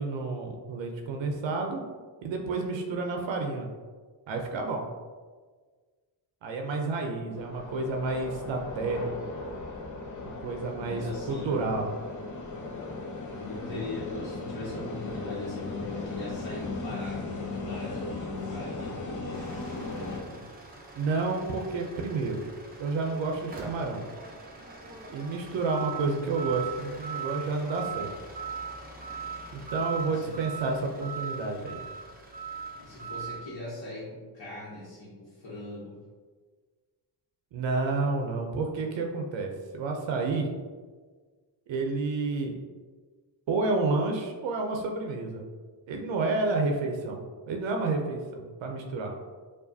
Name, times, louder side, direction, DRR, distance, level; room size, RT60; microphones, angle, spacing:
voice 1, 0.0-1.8 2.2-3.7 4.3-4.9 6.4-9.1 10.4-11.9 20.9-22.4 22.8-24.1 25.1-28.1 29.5-31.8 37.5-40.5 41.7-42.5 43.5-45.4 45.9-49.1, right 3 dB, 90° right, 2 dB, 0.6 m, -30 dB
sound 1, 7.4-20.2, left 3 dB, 45° left, 0.6 m, -37 dB
voice 2, 10.8-11.5 13.4-19.5 19.8-20.5 30.0-30.3 32.8-36.0, left 2 dB, 65° left, -9 dB, 1.1 m, -40 dB
sound 2, 19.3-33.4, right 5 dB, 20° right, 0.5 m, -40 dB
4.7 x 2.4 x 2.6 m, 1.4 s
wide cardioid pair, 115°, 44 cm